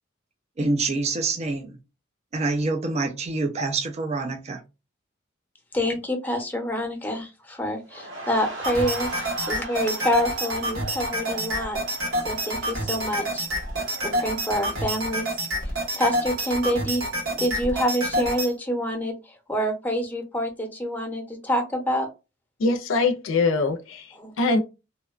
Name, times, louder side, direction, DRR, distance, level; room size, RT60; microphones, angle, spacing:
voice 1, 0.6-1.8 2.3-4.6, right 3 dB, 35° right, 0.4 m, -26 dB
voice 2, 5.7-9.1 9.5-11.8 12.3-13.4 14.0-15.3 15.6-15.7 16.0-17.0 17.3-19.1 19.5-22.1 24.2-24.3, equal, 10° left, 0.7 m, -27 dB
sound 1, 7.9-16.7 17.0-17.2, right 1 dB, 65° right, 1.0 m, -39 dB
sound 2, 8.6-18.5, right 1 dB, 90° right, 1.4 m, -28 dB
voice 3, 22.6-24.1 24.4-24.6, left 3 dB, 75° left, 0.4 m, -22 dB
2.8 x 2.2 x 2.3 m
head